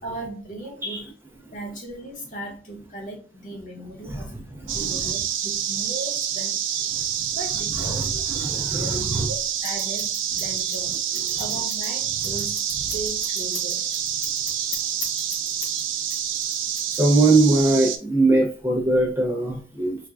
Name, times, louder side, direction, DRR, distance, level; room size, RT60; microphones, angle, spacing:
voice 1, 0.0-1.1 1.5-4.3 4.7-6.6 7.3-8.1 8.5-11.0 11.4-12.6 12.9-13.8, right 1 dB, 40° left, 0.9 m, -37 dB
voice 2, 4.6-5.0 7.0-7.1 7.9-9.3 16.9-20.0, right 2 dB, 15° right, 0.5 m, -21 dB
sound 1, 4.7-18.0, right 9 dB, 90° right, 0.4 m, -27 dB
Scissors, 9.6-15.8 16.1-17.4, left 4 dB, 85° left, 0.8 m, -37 dB
3.3 x 2.1 x 2.3 m
head